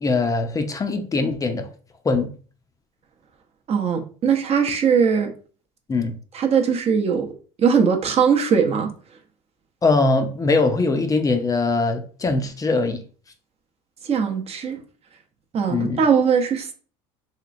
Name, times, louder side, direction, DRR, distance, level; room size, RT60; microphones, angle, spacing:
voice 1, 0.0-1.7 2.0-2.3 5.9-6.1 9.8-13.0 15.7-16.0, left 3 dB, 20° left, 0.5 m, -21 dB
voice 2, 3.7-5.3 6.3-7.3 7.6-8.9 14.1-14.8 15.5-16.7, right 6 dB, 35° right, 0.7 m, -20 dB
3.1 x 2.9 x 2.5 m
supercardioid pair, 105°, 17 cm